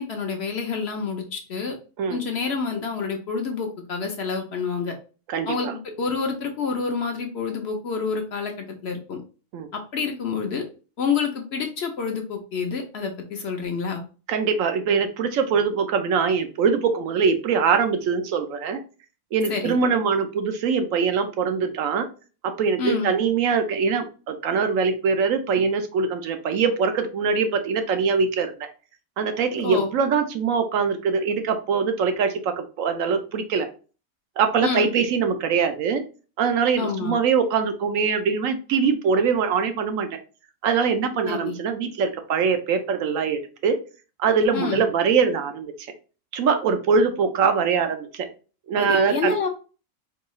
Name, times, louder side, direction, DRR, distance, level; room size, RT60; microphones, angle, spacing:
voice 1, 0.0-1.7 2.1-4.9 5.5-5.7 6.0-9.2 9.9-10.6 11.0-14.0 19.5-19.8 22.8-23.1 29.6-29.9 34.6-34.9 36.8-37.2 41.2-41.6 44.5-44.9 48.8-49.5, left 5 dB, 55° left, 3 dB, 0.8 m, -28 dB
voice 2, 5.3-5.7 9.5-9.7 14.3-18.8 19.3-22.1 22.4-28.5 29.2-33.7 34.4-36.0 36.4-40.2 40.6-43.8 44.2-45.7 46.3-48.3 48.7-49.4, right 5 dB, 70° right, 8 dB, 1.0 m, -23 dB
4.5 x 2.3 x 3.0 m, 0.36 s
omnidirectional pair, 1.5 m